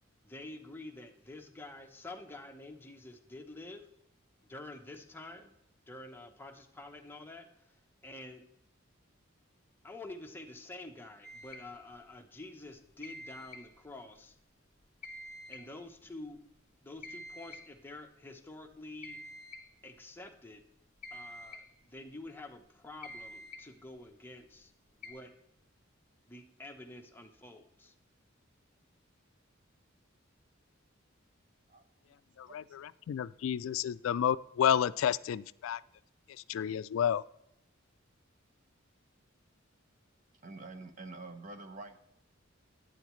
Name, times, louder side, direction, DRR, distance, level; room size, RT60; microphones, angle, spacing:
voice 1, 0.2-3.9 4.4-5.5 5.9-8.4 9.8-14.3 15.5-16.4 16.8-19.2 19.8-20.6 21.1-24.7 25.0-25.3 26.3-27.9, left 2 dB, 10° left, 0.9 m, -48 dB
sound 1, 11.2-11.7 13.0-13.7 15.0-15.7 17.0-17.7 19.0-19.7 21.0-21.7 23.0-23.7 25.0-25.1, left 1 dB, 35° left, 1.7 m, -47 dB
voice 2, 32.4-35.8 36.5-37.2, left 9 dB, 75° left, 0.3 m, -30 dB
voice 3, 40.4-42.0, right 3 dB, 40° right, 0.9 m, -47 dB
11.5 x 9.1 x 3.1 m
head